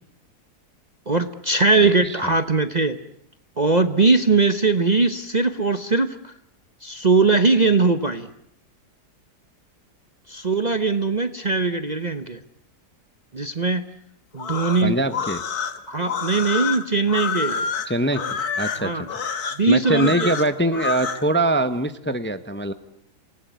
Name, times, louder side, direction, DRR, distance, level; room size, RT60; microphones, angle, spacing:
voice 1, 1.1-3.0 3.6-6.3 6.8-8.3 10.3-12.4 13.3-13.8 14.3-15.0 15.9-17.6 18.8-19.1 19.6-20.3, right 3 dB, 30° right, 9 dB, 1.0 m, -20 dB
voice 2, 1.8-2.3 14.8-15.4 17.8-18.2 18.6-19.1 19.7-22.7, right 1 dB, 10° left, 10 dB, 0.9 m, -23 dB
sound 1, 14.3-21.2, left 6 dB, 70° left, 1.9 m, -28 dB
28.0 x 19.0 x 9.3 m, 0.72 s
omnidirectional pair, 1.7 m